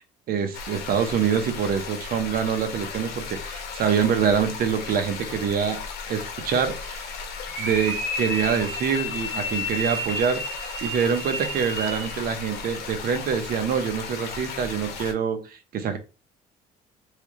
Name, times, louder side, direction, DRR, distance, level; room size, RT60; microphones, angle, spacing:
voice 1, 0.3-5.8 6.1-7.1 7.6-16.0, right 7 dB, 60° right, 0.9 m, -25 dB
sound 1, 0.5-15.1, left 5 dB, 75° left, 1.0 m, -36 dB
sound 2, 7.5-12.2, equal, 15° right, 1.7 m, -31 dB
3.7 x 3.4 x 3.0 m
cardioid pair, 110°, 17 cm